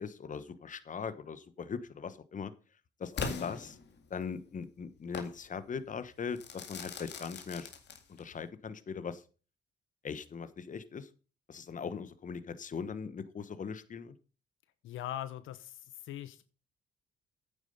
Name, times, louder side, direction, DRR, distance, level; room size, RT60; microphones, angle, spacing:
voice 1, 0.0-2.5 3.0-3.8 4.1-7.7 8.2-9.2 10.0-11.1 11.5-14.1, left 6 dB, 40° left, 13 dB, 1.1 m, -40 dB
Crackle / Fireworks, 3.2-4.3 5.1-5.4 6.4-8.4, left 5 dB, 60° left, 2.1 m, -40 dB
voice 2, 14.8-16.4, left 12 dB, 80° left, 13 dB, 0.9 m, -41 dB
9.2 x 7.4 x 5.3 m, 0.35 s
cardioid pair, 90°, 20 cm